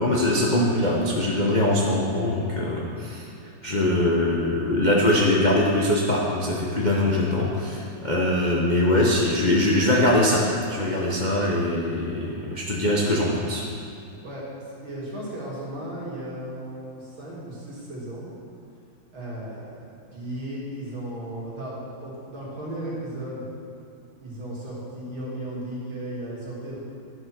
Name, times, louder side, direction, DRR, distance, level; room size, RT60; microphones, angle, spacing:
voice 1, 0.0-3.3 3.6-13.6, left 1 dB, 45° left, -4 dB, 0.5 m, -22 dB
voice 2, 14.2-18.3 19.1-19.8 20.1-23.5 24.2-26.8, right 1 dB, 75° right, -6 dB, 3.0 m, -35 dB
11.0 x 5.5 x 5.9 m, 2.5 s
omnidirectional pair, 2.3 m